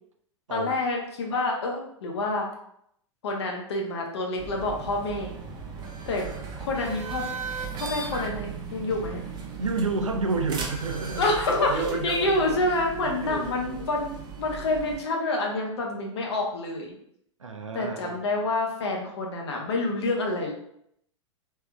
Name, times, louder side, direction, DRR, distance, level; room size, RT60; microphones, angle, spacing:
voice 1, 0.5-2.5 3.2-5.3 6.1-6.2 6.6-7.3 7.7-9.2 11.2-16.9 17.7-20.5, left 2 dB, 60° left, 1 dB, 0.8 m, -28 dB
sound 1, 4.4-15.0, right 6 dB, 25° right, 0.7 m, -37 dB
voice 2, 9.6-11.3 11.7-12.6 13.0-14.0 17.4-18.2, right 3 dB, 75° right, 4 dB, 0.6 m, -30 dB
3.3 x 3.2 x 2.2 m, 0.72 s
figure-of-eight pair, 95°, 16 cm